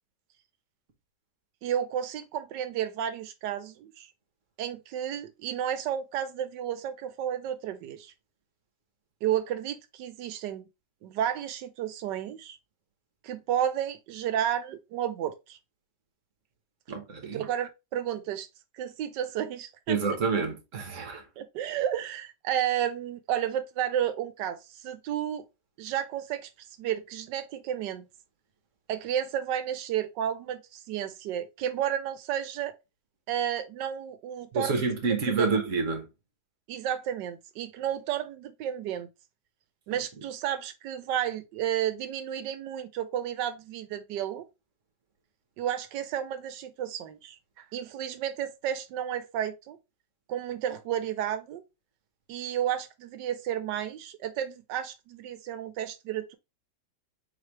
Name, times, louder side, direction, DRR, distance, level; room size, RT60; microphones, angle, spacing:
voice 1, 1.6-4.1 4.6-8.1 9.2-10.6 11.0-12.6 13.2-15.6 17.2-18.5 18.8-20.0 21.4-25.4 25.8-26.5 26.8-28.1 28.9-32.8 33.3-34.8 35.4-35.5 36.7-39.1 39.9-44.5 45.6-49.8 50.3-51.6 52.3-56.4, right 10 dB, 90° right, 1.3 m, -32 dB
voice 2, 16.9-17.5 19.9-21.3 34.5-36.1, right 4 dB, 50° right, 1.4 m, -28 dB
4.3 x 3.3 x 3.1 m
omnidirectional pair, 1.8 m